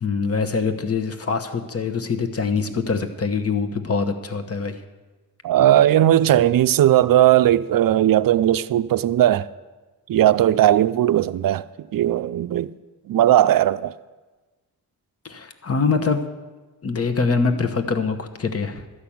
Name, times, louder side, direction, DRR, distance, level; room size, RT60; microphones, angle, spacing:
voice 1, 0.0-4.8 15.2-16.2 16.8-18.9, left 4 dB, 40° left, 1.0 m, -24 dB
voice 2, 5.4-9.5 10.1-11.6 11.9-12.7 13.1-13.9, right 12 dB, 65° right, 0.5 m, -17 dB
13.0 x 5.9 x 8.5 m
wide cardioid pair, 110°, 37 cm